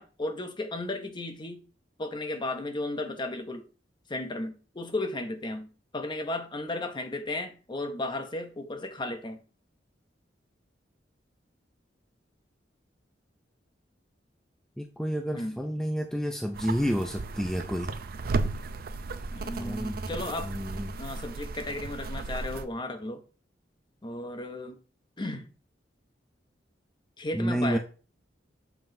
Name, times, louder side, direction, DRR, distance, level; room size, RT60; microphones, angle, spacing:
voice 1, 0.0-1.6 2.0-3.6 4.1-9.4 15.3-15.6 19.3-20.5 21.0-23.2 24.0-24.8 25.2-25.5 27.2-27.8, left 2 dB, 25° left, 0.7 m, -34 dB
voice 2, 14.8-17.9 19.6-20.0 20.4-20.9 27.3-27.8, equal, 5° left, 0.4 m, -30 dB
sound 1, 16.5-22.7, right 3 dB, 55° right, 0.5 m, -35 dB
7.0 x 5.7 x 2.7 m
head